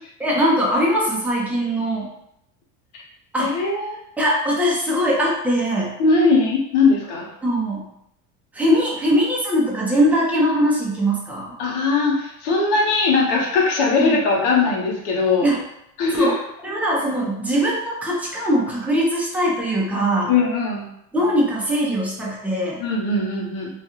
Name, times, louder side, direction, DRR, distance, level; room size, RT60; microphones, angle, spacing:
voice 1, 0.2-2.1 3.3-3.6 4.2-5.9 7.4-7.9 8.5-11.5 14.0-14.2 15.4-15.6 16.2-16.3 16.6-20.3 21.1-22.8, equal, 5° right, -4 dB, 0.6 m, -21 dB
voice 2, 3.4-4.0 6.0-7.2 11.6-15.5 16.0-16.4 20.3-20.8 22.8-23.7, left 3 dB, 70° left, -2 dB, 0.9 m, -20 dB
2.4 x 2.3 x 2.9 m, 0.77 s
supercardioid pair, 125°, 41 cm